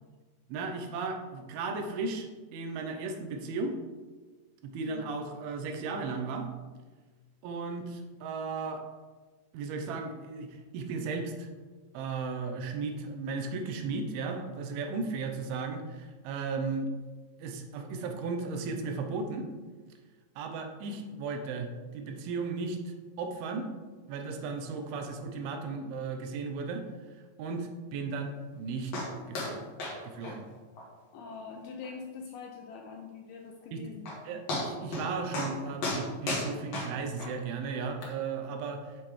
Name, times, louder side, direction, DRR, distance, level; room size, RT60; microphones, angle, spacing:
voice 1, 0.5-3.8 4.6-6.5 7.4-8.8 9.5-11.5 11.9-16.9 17.4-19.5 20.4-23.7 24.1-26.8 27.4-29.7 30.0-30.4 33.7-33.8 34.3-39.0, right 4 dB, 75° right, 5 dB, 2.4 m, -35 dB
sound 1, 28.9-29.1 29.3-29.5 29.8-30.0 30.2-30.3 30.8-30.9 31.3-31.4 31.8-31.9 33.6-33.7 34.1-34.2 34.5-35.1 35.3-35.5 35.8-37.3 38.0-38.1, left 2 dB, 55° left, 2.0 m, -33 dB
voice 2, 31.1-34.4, left 5 dB, 80° left, 1 dB, 2.2 m, -44 dB
9.3 x 6.7 x 3.2 m, 1.3 s
omnidirectional pair, 5.1 m